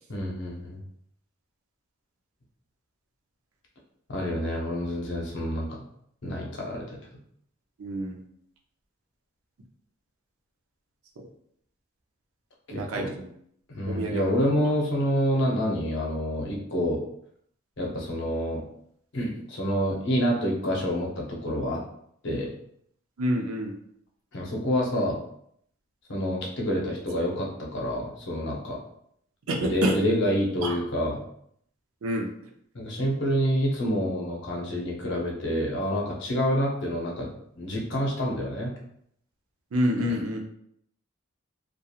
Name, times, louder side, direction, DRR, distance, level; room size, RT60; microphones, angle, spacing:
voice 1, 0.1-0.8 4.1-5.8 6.2-7.0 12.7-13.1 13.7-17.0 17.8-18.6 19.1-21.8 22.2-22.5 24.3-25.2 26.1-28.8 29.6-31.2 32.7-38.7 40.0-40.1, equal, 55° left, -2 dB, 0.6 m, -28 dB
voice 2, 7.8-8.2 11.2-11.3 12.7-13.3 13.8-14.7 23.2-23.7 29.5-30.0 30.6-30.7 32.0-32.3 39.7-40.4, equal, 75° right, 2 dB, 0.5 m, -28 dB
2.8 x 2.3 x 2.3 m, 0.70 s
head